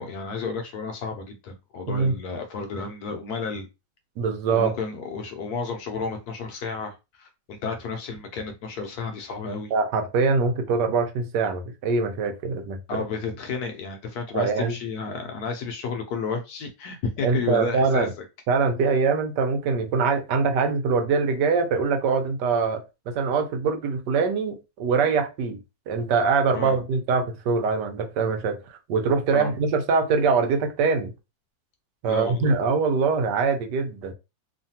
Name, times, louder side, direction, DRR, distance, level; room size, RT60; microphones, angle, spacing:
voice 1, 0.0-3.7 4.5-9.7 12.2-12.3 12.9-18.1 26.5-26.8 29.3-29.5 32.1-32.5, left 4 dB, 70° left, 1.0 m, -32 dB
voice 2, 4.2-4.7 9.7-12.8 14.3-14.7 17.2-18.1 18.5-25.6 25.9-28.6 28.9-31.1 32.0-34.1, right 4 dB, 75° right, 1.2 m, -23 dB
3.1 x 2.2 x 2.7 m
omnidirectional pair, 1.9 m